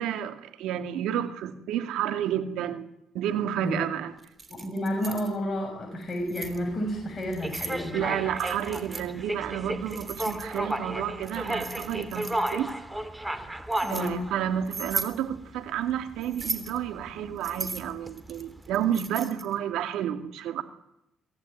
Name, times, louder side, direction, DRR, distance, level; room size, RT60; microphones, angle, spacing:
voice 1, 0.0-2.9 3.1-4.1 7.9-12.7 13.9-20.6, right 10 dB, 90° right, 8 dB, 2.3 m, -30 dB
Keys jangling, 4.2-5.3 6.0-6.6 7.2-7.8 8.4-9.1 9.9-10.8 11.2-12.7 13.3-14.1 14.7-15.2 16.2-16.8 17.4-19.5, right 4 dB, 30° right, 3.3 m, -37 dB
voice 2, 4.5-8.1 13.8-14.1, equal, 30° left, 0 dB, 6.9 m, -31 dB
sound 1, 6.4-18.9, right 1 dB, 10° right, 2.6 m, -35 dB
24.0 x 16.5 x 9.4 m, 0.83 s
cardioid pair, 90°, 0 cm